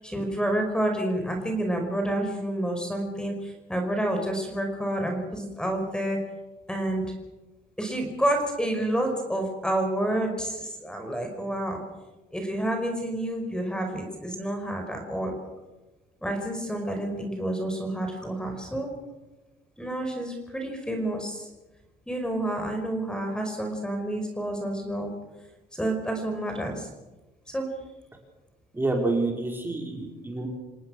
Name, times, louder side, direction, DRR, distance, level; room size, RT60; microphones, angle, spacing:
voice 1, 0.0-6.2 6.7-7.1 7.8-11.8 12.3-15.3 16.2-18.9 19.8-21.5 22.1-25.1 25.7-26.9 27.5-27.7, right 1 dB, 5° left, 4 dB, 5.2 m, -29 dB
voice 2, 28.7-30.5, right 2 dB, 10° right, 1 dB, 5.2 m, -28 dB
28.0 x 18.0 x 6.5 m, 1.1 s
cardioid pair, 110°, 17 cm